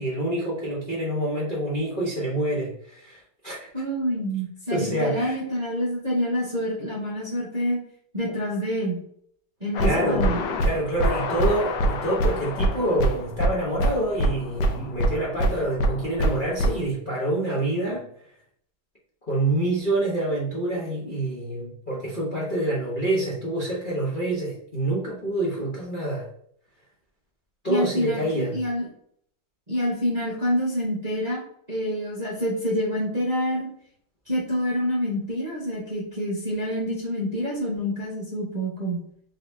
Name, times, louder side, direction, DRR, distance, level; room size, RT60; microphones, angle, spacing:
voice 1, 0.0-3.7 4.7-5.4 9.8-10.3 10.6-18.1 19.3-26.3 27.6-28.6, right 1 dB, 40° left, -6 dB, 0.7 m, -27 dB
voice 2, 3.7-7.8 8.1-9.0 9.6-10.4 27.7-28.9 29.7-31.4 31.7-33.7 34.3-39.0, equal, 30° right, -6 dB, 0.8 m, -27 dB
sound 1, 9.7-16.8, right 1 dB, 70° left, 1.1 m, -25 dB
4.1 x 4.0 x 2.6 m, 0.65 s
omnidirectional pair, 2.4 m